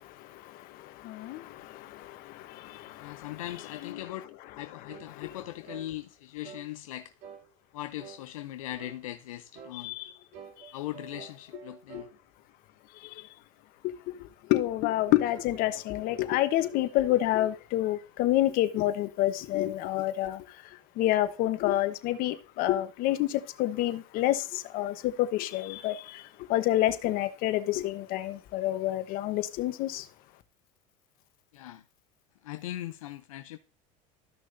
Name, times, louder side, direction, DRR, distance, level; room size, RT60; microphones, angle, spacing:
voice 1, 0.0-4.1 4.7-5.4 9.7-10.1 11.9-12.0 13.0-13.3 13.8-30.1, left 14 dB, 60° left, 1.0 m, -29 dB
voice 2, 3.0-4.3 4.6-7.1 7.7-9.9 10.7-12.1 31.5-31.8 32.4-33.6, left 14 dB, 90° left, 0.5 m, -39 dB
sound 1, 4.9-5.1 5.6-5.9 6.4-6.7 7.2-7.5 8.0-8.2 8.8-9.0 9.5-9.8 10.3-12.1, right 7 dB, 55° right, 2.4 m, -47 dB
13.5 x 6.2 x 2.6 m
hypercardioid pair, 90°, 17 cm